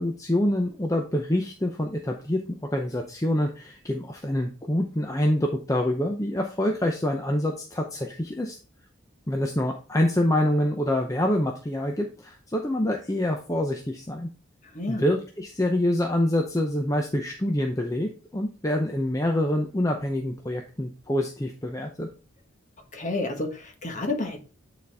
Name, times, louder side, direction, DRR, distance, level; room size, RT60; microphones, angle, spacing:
voice 1, 0.0-2.4 2.7-8.5 9.3-14.3 14.9-22.1, left 1 dB, 15° left, 2 dB, 0.7 m, -26 dB
voice 2, 22.9-24.4, left 2 dB, 35° left, 4 dB, 1.4 m, -30 dB
9.1 x 4.2 x 3.4 m, 0.37 s
head